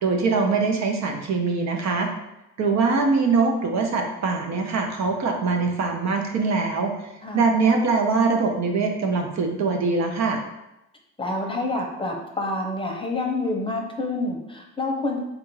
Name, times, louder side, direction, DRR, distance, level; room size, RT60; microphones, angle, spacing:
voice 1, 0.0-2.1 2.6-6.9 7.3-10.4, right 4 dB, 65° right, 3 dB, 0.8 m, -22 dB
voice 2, 11.2-15.2, left 2 dB, 15° left, 1 dB, 0.7 m, -27 dB
3.8 x 2.5 x 4.6 m, 0.90 s
cardioid pair, 90°, 30 cm